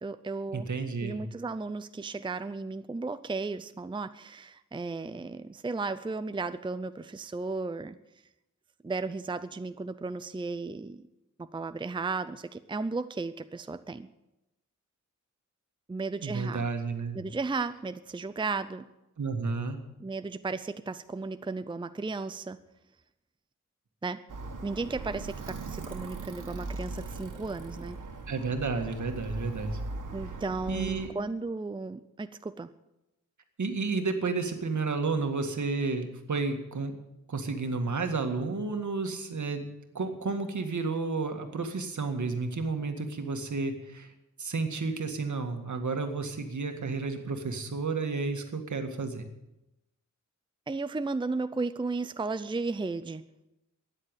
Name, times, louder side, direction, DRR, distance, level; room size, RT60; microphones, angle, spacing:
voice 1, 0.0-0.7 1.0-8.0 8.8-11.1 11.4-14.1 15.9-16.7 17.1-18.9 20.0-22.6 24.0-24.2 24.6-28.0 30.1-32.7 50.7-53.2, right 3 dB, 15° right, 12 dB, 0.5 m, -34 dB
voice 2, 0.5-1.2 16.2-17.2 19.2-19.8 28.3-29.8 30.7-31.1 33.6-37.0 37.3-39.7 39.9-44.1 44.4-49.2, right 4 dB, 70° right, 6 dB, 2.0 m, -31 dB
Alarm, 24.3-31.1, right 3 dB, 85° right, 1.9 m, -39 dB
13.5 x 10.0 x 9.0 m, 0.93 s
wide cardioid pair, 110°, 31 cm